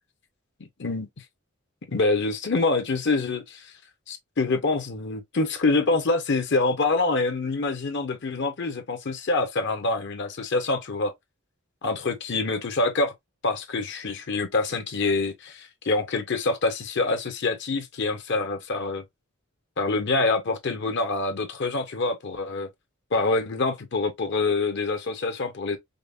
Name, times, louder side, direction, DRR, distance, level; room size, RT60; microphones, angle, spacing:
voice 1, 1.9-3.7 4.1-11.1 11.8-13.1 13.4-19.0 19.8-22.7 23.1-25.8, left 3 dB, 55° left, 0.8 m, -26 dB
5.1 x 2.1 x 2.4 m
head